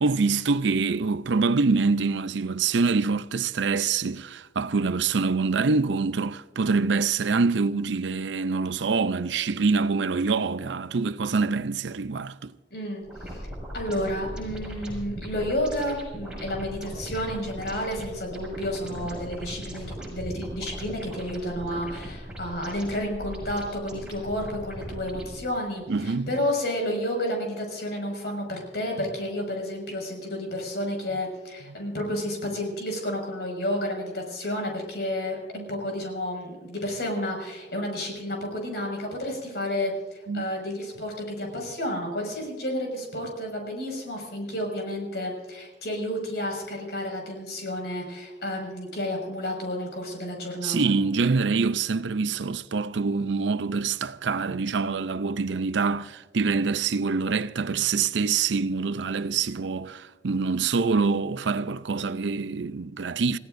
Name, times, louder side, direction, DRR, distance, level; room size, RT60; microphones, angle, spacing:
voice 1, 0.0-12.5 25.9-26.3 31.7-31.8 35.5-35.7 40.3-40.5 50.6-63.4, right 4 dB, 80° right, 0.5 m, -25 dB
voice 2, 12.7-13.5 13.7-35.4 35.7-50.9, left 1 dB, 65° left, 5.9 m, -31 dB
sound 1, 13.0-25.4, equal, 5° right, 6.0 m, -39 dB
28.5 x 17.0 x 2.6 m
head